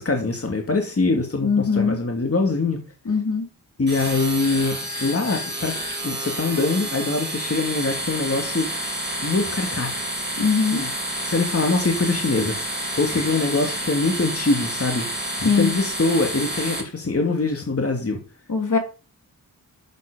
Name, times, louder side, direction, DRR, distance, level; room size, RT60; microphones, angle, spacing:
voice 1, 0.0-2.8 3.8-5.8 6.0-8.7 9.2-9.9 10.7-10.9 11.2-15.1 15.5-18.2, left 3 dB, 40° left, 2 dB, 2.5 m, -23 dB
voice 2, 1.4-2.0 3.1-3.5 10.4-10.8 15.4-15.7 18.5-18.8, left 5 dB, 55° left, 4 dB, 2.9 m, -21 dB
sound 1, 3.9-16.8, right 1 dB, 30° right, 4.1 m, -29 dB
12.5 x 8.2 x 5.2 m, 0.34 s
wide cardioid pair, 70°, 37 cm